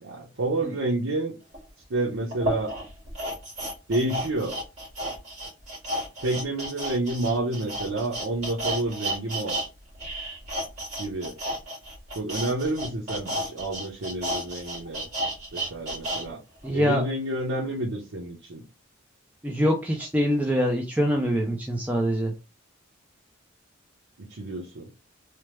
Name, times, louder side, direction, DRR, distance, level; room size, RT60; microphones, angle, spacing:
voice 1, 0.0-1.3 1.9-2.7 3.9-4.6 6.2-9.6 11.0-11.4 12.1-15.1 15.5-16.4 16.7-18.6 24.2-24.9, right 2 dB, 90° right, 0.7 m, -29 dB
sound 1, 1.5-1.6 2.3-9.7 9.9-16.2 16.6-16.7, right 1 dB, 35° right, 1.7 m, -32 dB
voice 2, 16.6-17.0 19.4-22.3, equal, 10° right, 0.4 m, -24 dB
3.3 x 2.1 x 3.0 m
head